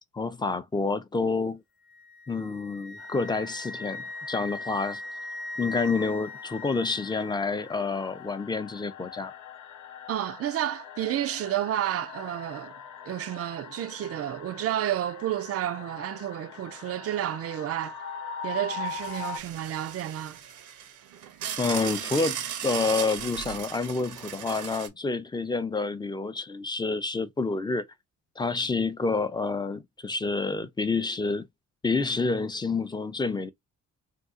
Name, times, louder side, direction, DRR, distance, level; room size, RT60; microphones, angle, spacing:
voice 1, 0.1-1.6 2.3-5.0 5.6-9.3 21.6-27.8 28.4-31.5 31.8-33.5, left 4 dB, 15° left, 0.5 m, -28 dB
Wind instrument woodwind instrument, 1.9-7.8, left 2 dB, 50° left, 0.8 m, -40 dB
sound 1, 3.0-19.4, left 6 dB, 75° left, 0.6 m, -42 dB
voice 2, 10.1-12.8 13.1-18.0 18.4-20.4, right 12 dB, 50° right, 0.4 m, -31 dB
sound 2, 18.9-24.9, right 9 dB, 80° right, 0.8 m, -37 dB
2.7 x 2.4 x 3.6 m
cardioid pair, 90°, 30 cm